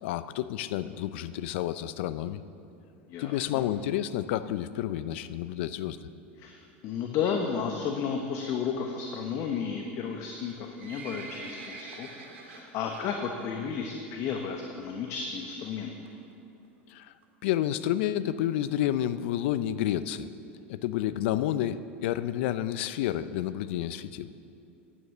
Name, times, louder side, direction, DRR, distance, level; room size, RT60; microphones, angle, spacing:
voice 1, 0.0-2.4 3.2-6.0 16.9-17.1 17.4-20.3 20.7-24.3, left 12 dB, 70° left, 14 dB, 0.5 m, -30 dB
voice 2, 3.1-3.6 6.4-12.1 12.4-15.9, left 6 dB, 50° left, 3 dB, 1.1 m, -33 dB
Livestock farm animals working animals, 10.4-13.1 13.4-13.7 14.0-14.1 14.8-14.9 15.1-15.2 15.4-15.5 16.1-16.3 16.9-17.0 17.2-17.3 17.5-17.6 17.8-17.9 18.4-18.5 18.9-19.0 19.5-19.6, right 4 dB, 75° right, 2.4 m, -45 dB
11.0 x 9.4 x 7.2 m, 2.6 s
hypercardioid pair, 90°, 7 cm